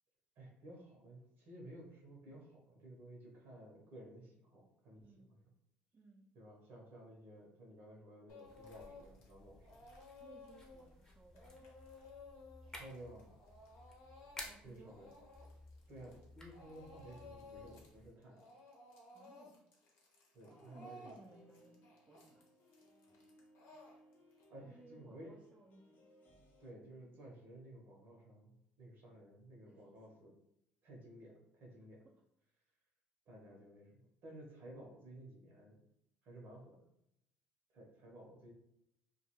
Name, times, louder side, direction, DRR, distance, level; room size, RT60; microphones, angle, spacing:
voice 1, 0.4-5.4 6.3-9.9 12.6-13.3 14.6-15.1 15.9-18.4 20.3-21.2 24.5-25.3 26.6-30.3 30.8-32.0 33.3-35.8 36.2-36.9 37.7-38.5, right 1 dB, 65° right, -2 dB, 0.8 m, -55 dB
voice 2, 5.0-5.3 5.9-6.3 10.2-11.7 14.4-15.0 19.1-19.6 20.5-22.5 24.6-25.9 29.7-30.2, right 3 dB, 30° right, -1 dB, 0.4 m, -61 dB
Speech / Crying sobbing, 8.3-9.3 9.6-16.2 16.5-17.9 18.2-24.4, left 2 dB, 75° left, 0.8 m, -57 dB
sound 1, 8.4-18.1, left 1 dB, 15° left, 0.7 m, -56 dB
sound 2, 20.4-26.7, equal, 50° left, 0.6 m, -66 dB
2.3 x 2.2 x 3.0 m, 0.80 s
supercardioid pair, 85°, 4 cm